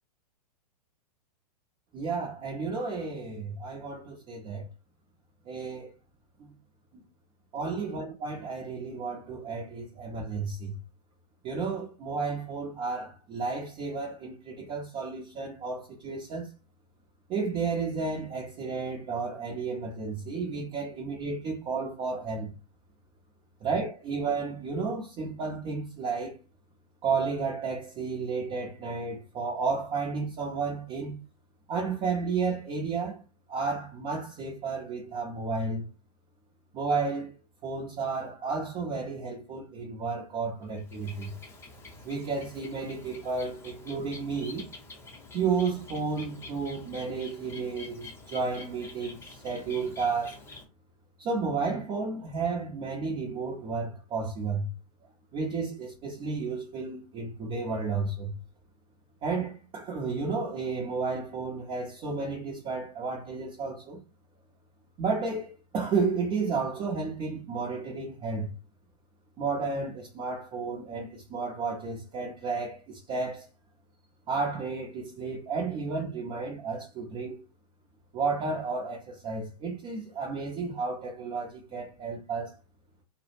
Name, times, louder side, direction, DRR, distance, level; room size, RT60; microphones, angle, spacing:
voice 1, 1.9-4.7 5.4-5.9 6.4-6.5 6.9-7.0 7.5-10.7 11.4-16.5 17.3-22.5 23.6-26.4 27.0-31.1 31.7-33.2 33.5-35.9 36.7-37.3 37.6-41.3 42.0-44.7 45.3-50.4 51.2-54.7 55.3-58.3 59.2-64.0 65.0-68.5 69.4-73.5 74.3-77.4 78.1-82.6, right 4 dB, 25° right, 0.6 m, -32 dB
Bird, 40.6-50.6, left 3 dB, 10° left, 0.7 m, -47 dB
2.2 x 2.0 x 3.1 m
figure-of-eight pair, 110°, 20 cm